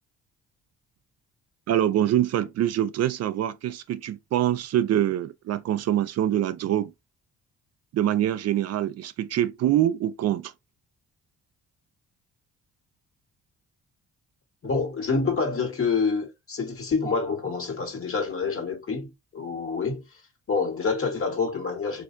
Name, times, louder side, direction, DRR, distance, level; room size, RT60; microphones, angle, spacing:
voice 1, 1.7-6.9 7.9-10.5, right 11 dB, 55° right, 0.4 m, -24 dB
voice 2, 14.6-20.0 20.5-22.0, left 4 dB, 45° left, 1.4 m, -27 dB
3.3 x 2.5 x 2.5 m
cardioid pair, 90°, 30 cm